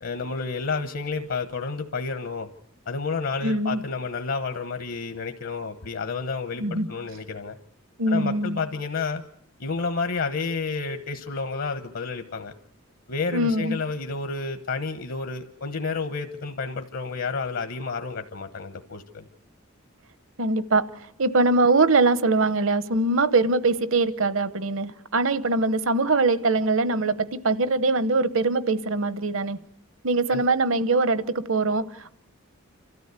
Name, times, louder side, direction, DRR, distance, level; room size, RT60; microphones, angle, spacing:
voice 1, 0.0-2.5 2.9-7.6 8.1-9.2 9.6-12.5 13.1-19.3 30.3-30.4, left 4 dB, 70° left, 7 dB, 1.1 m, -30 dB
voice 2, 3.4-3.8 6.6-6.9 8.0-8.6 13.3-13.8 20.4-20.9 21.2-29.6 30.0-32.1, right 3 dB, 65° right, 14 dB, 0.9 m, -22 dB
28.5 x 13.5 x 8.2 m, 0.76 s
head